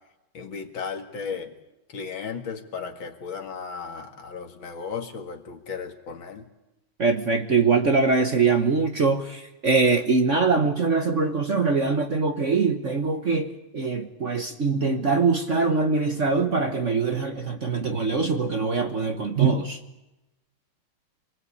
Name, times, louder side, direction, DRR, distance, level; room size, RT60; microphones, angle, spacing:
voice 1, 0.3-1.5 1.9-6.5, left 6 dB, 65° left, 5 dB, 2.7 m, -35 dB
voice 2, 7.0-19.8, right 4 dB, 40° right, 6 dB, 1.3 m, -23 dB
26.5 x 20.5 x 8.5 m, 0.99 s
omnidirectional pair, 2.3 m